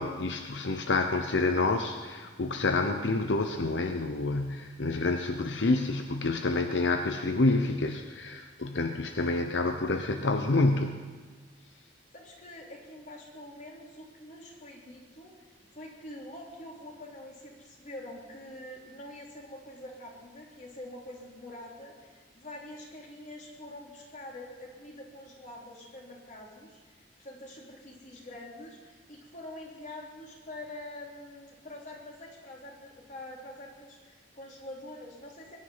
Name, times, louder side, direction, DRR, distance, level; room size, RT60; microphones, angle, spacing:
voice 1, 0.0-11.1, left 2 dB, 80° left, 6 dB, 0.8 m, -28 dB
voice 2, 12.1-35.6, left 1 dB, 45° left, -2 dB, 3.6 m, -45 dB
21.5 x 11.0 x 5.7 m, 1.4 s
head